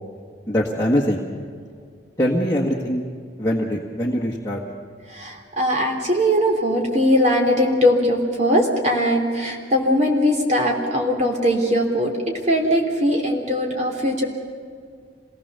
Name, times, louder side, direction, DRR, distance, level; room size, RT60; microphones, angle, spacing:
voice 1, 0.5-1.3 2.2-3.0 3.4-4.6, equal, 15° left, -4 dB, 1.7 m, -22 dB
voice 2, 5.1-14.2, equal, 40° right, 1 dB, 3.3 m, -20 dB
26.5 x 19.5 x 6.9 m, 2.1 s
head